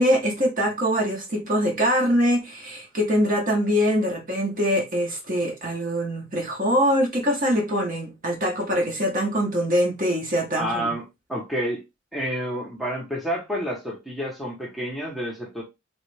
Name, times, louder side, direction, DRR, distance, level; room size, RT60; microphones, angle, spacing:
voice 1, 0.0-11.0, equal, 45° right, 0.9 m, -23 dB
voice 2, 10.5-11.0 11.3-11.8 12.1-15.6, equal, ahead, 0.8 m, -29 dB
3.1 x 2.4 x 3.2 m
head